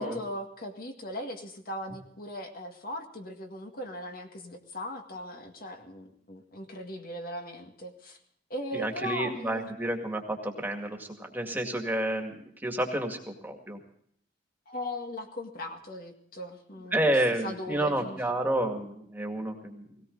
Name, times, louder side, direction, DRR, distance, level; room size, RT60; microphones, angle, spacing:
voice 1, 0.0-8.2 8.5-9.7 14.7-17.2 17.4-18.2, left 1 dB, 50° left, 3 dB, 2.0 m, -38 dB
voice 2, 8.7-13.8 16.9-20.1, right 1 dB, 10° right, 3 dB, 2.1 m, -30 dB
18.0 x 18.0 x 3.9 m, 0.66 s
head